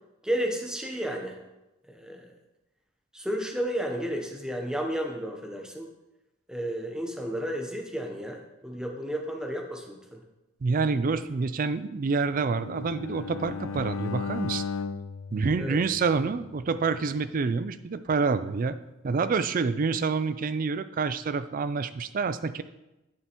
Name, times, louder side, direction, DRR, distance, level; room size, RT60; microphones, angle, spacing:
voice 1, 0.2-1.4 1.9-2.3 3.1-5.9 6.5-10.2 15.6-15.8, equal, 5° right, 2 dB, 0.8 m, -32 dB
voice 2, 10.6-14.6 15.3-18.8 19.0-22.6, right 4 dB, 40° right, 13 dB, 0.3 m, -27 dB
Bowed string instrument, 12.3-16.5, left 5 dB, 75° left, 0.4 m, -36 dB
9.8 x 6.7 x 3.0 m, 1.0 s
head